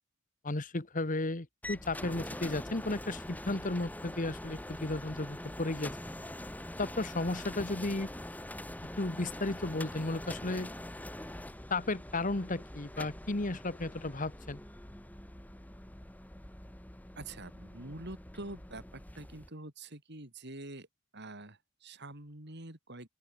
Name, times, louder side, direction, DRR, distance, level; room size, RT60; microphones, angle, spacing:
voice 1, 0.4-5.9 6.8-8.1 9.0-10.7 11.7-14.6, left 2 dB, 40° left, 1.4 m, -34 dB
sound 1, 1.6-19.5, left 1 dB, 10° left, 1.4 m, -44 dB
voice 2, 17.2-20.9 21.1-23.1, right 2 dB, 55° right, 4.4 m, -46 dB
open air
head